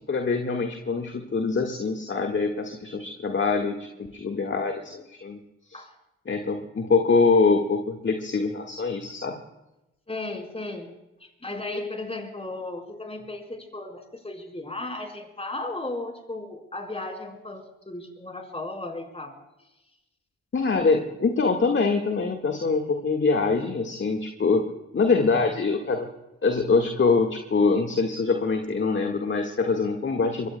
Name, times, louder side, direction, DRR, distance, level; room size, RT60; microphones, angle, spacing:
voice 1, 0.1-5.4 5.7-5.8 6.3-9.3 20.5-24.6 24.9-26.1 26.4-30.5, left 4 dB, 35° left, 3 dB, 1.8 m, -24 dB
voice 2, 10.1-10.9 11.2-19.3, left 2 dB, 15° left, 2 dB, 4.6 m, -35 dB
25.0 x 23.0 x 2.3 m, 0.95 s
hypercardioid pair, 40°, 35 cm